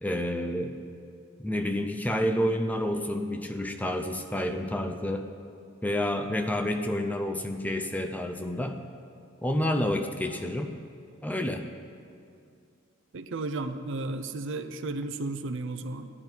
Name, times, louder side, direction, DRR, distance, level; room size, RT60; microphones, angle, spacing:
voice 1, 0.0-0.8 1.4-5.3 5.8-8.8 9.4-10.7 11.2-11.6, left 1 dB, 10° left, 5 dB, 0.6 m, -29 dB
voice 2, 13.1-16.1, right 2 dB, 65° right, 9 dB, 0.6 m, -33 dB
16.5 x 9.8 x 4.5 m, 2.4 s
head